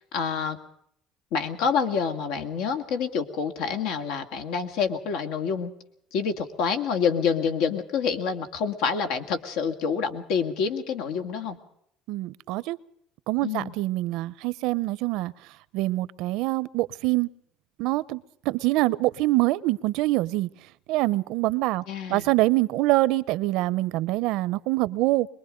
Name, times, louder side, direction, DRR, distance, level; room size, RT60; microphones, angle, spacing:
voice 1, 0.1-0.6 1.3-5.7 6.1-11.6 13.4-13.7 21.9-22.3, left 6 dB, 85° left, 7 dB, 2.2 m, -27 dB
voice 2, 12.1-12.8 13.3-15.3 15.7-17.3 17.8-21.8 22.1-25.3, right 19 dB, 75° right, 19 dB, 0.7 m, -25 dB
23.5 x 21.5 x 5.2 m, 0.71 s
cardioid pair, 155°, 0 cm